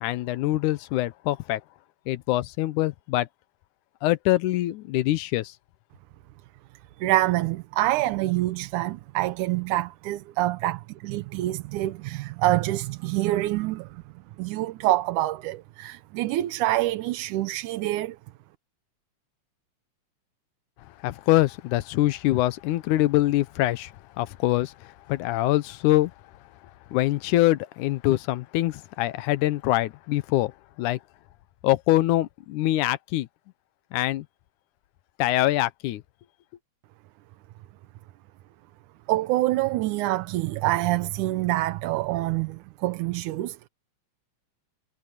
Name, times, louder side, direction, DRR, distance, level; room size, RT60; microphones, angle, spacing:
voice 1, 0.0-1.6 2.1-3.3 4.0-5.5 21.0-26.1 26.9-30.5 30.8-31.0 31.6-33.3 33.9-34.3 35.2-36.0, left 16 dB, 85° left, 2.3 m, -24 dB
voice 2, 7.0-14.0 14.4-18.2 39.1-43.7, right 16 dB, 90° right, 2.3 m, -26 dB
omnidirectional pair, 3.4 m